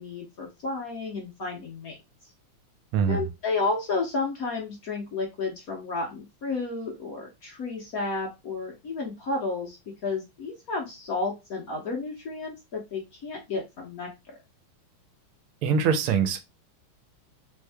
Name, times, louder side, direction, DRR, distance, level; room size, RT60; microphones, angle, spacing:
voice 1, 0.0-2.0 3.1-9.8 10.0-14.4, left 3 dB, 60° left, 0.9 m, -32 dB
voice 2, 2.9-3.3 15.6-16.4, right 6 dB, 85° right, 1.6 m, -23 dB
3.6 x 3.5 x 3.3 m
omnidirectional pair, 2.3 m